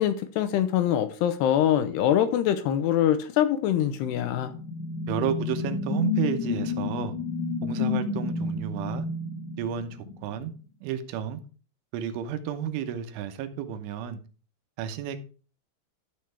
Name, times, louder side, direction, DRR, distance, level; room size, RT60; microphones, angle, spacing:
voice 1, 0.0-4.5, left 10 dB, 75° left, 2.6 m, -24 dB
sound 1, 4.1-10.4, left 4 dB, 60° left, 2.2 m, -31 dB
voice 2, 5.1-7.1 7.6-9.1 9.6-10.5 10.8-11.4 11.9-14.2 14.8-15.2, right 9 dB, 85° right, 3.4 m, -31 dB
12.5 x 6.4 x 3.4 m
omnidirectional pair, 5.4 m